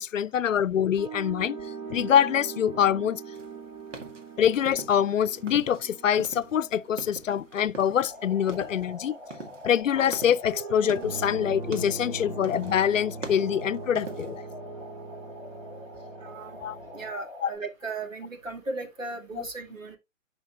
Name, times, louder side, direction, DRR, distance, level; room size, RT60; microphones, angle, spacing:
voice 1, 0.0-1.6 1.9-3.2 4.4-9.2 9.6-14.4 16.6-16.8 17.4-17.5 19.3-19.5, left 9 dB, 75° left, 0.6 m, -25 dB
sound 1, 1.0-9.1 10.4-17.1, right 4 dB, 35° right, 2.0 m, -41 dB
sound 2, 3.3-5.9 6.1-8.2 8.4-8.9 9.3-11.3 11.6-12.1 12.4-12.8 13.1-14.4, right 3 dB, 70° right, 2.0 m, -42 dB
sound 3, 8.0-17.6, left 1 dB, 5° right, 2.5 m, -45 dB
voice 2, 16.2-16.6 16.9-20.0, right 3 dB, 85° right, 2.5 m, -36 dB
11.0 x 5.2 x 2.4 m
figure-of-eight pair, 140°, 39 cm